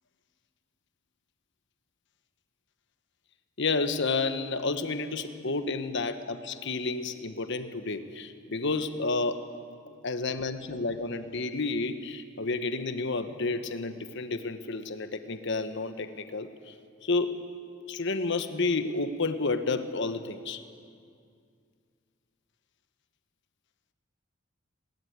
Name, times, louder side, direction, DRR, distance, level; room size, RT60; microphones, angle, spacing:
voice 1, 3.6-9.4 10.0-16.7 17.0-17.5 17.9-20.6, left 3 dB, 60° left, 9 dB, 1.2 m, -30 dB
20.0 x 18.0 x 9.4 m, 2.3 s
head